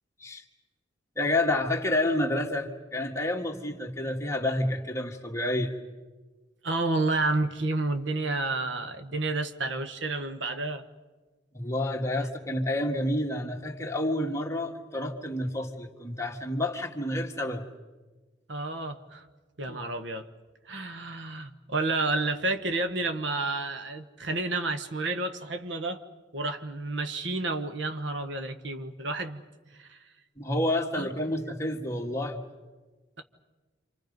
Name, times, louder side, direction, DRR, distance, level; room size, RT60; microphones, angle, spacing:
voice 1, 1.2-5.7 11.5-17.7 19.7-19.8 30.4-32.4, left 1 dB, 15° left, 1 dB, 1.9 m, -29 dB
voice 2, 6.6-10.8 18.5-19.3 19.6-20.3 20.6-26.0 26.3-29.4 29.7-30.1 30.9-31.1, right 2 dB, 65° right, 8 dB, 1.3 m, -30 dB
29.0 x 26.0 x 5.3 m, 1.2 s
head